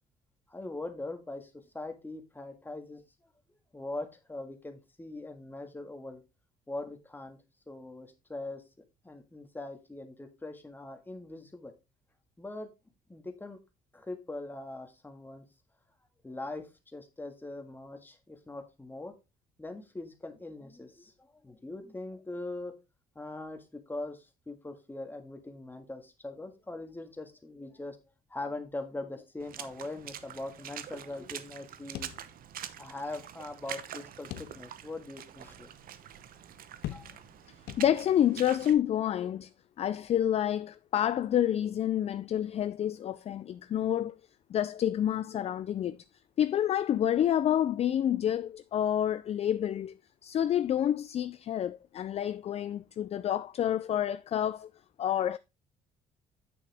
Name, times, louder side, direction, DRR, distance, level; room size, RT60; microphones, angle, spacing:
voice 1, 0.5-3.0 3.7-6.2 6.7-7.4 7.7-8.6 9.0-11.7 12.4-12.7 13.1-13.6 13.9-15.4 16.2-19.1 19.6-22.7 23.1-28.0 28.3-32.1 32.8-35.7 36.9-37.2, left 2 dB, 10° left, 1.7 m, -41 dB
Water / Splash splatter, 29.4-38.7, right 10 dB, 60° right, 0.9 m, -45 dB
sound 1, 31.9-32.8 33.1-33.2 34.3-35.0 35.5-35.6 36.8-37.4 37.7-38.3, left 13 dB, 75° left, 0.7 m, -42 dB
voice 2, 37.8-39.5 39.8-44.1 44.5-46.0 46.4-49.9 50.2-54.7 55.0-55.4, left 10 dB, 40° left, 0.4 m, -28 dB
8.6 x 6.6 x 3.4 m
cardioid pair, 110°, 17 cm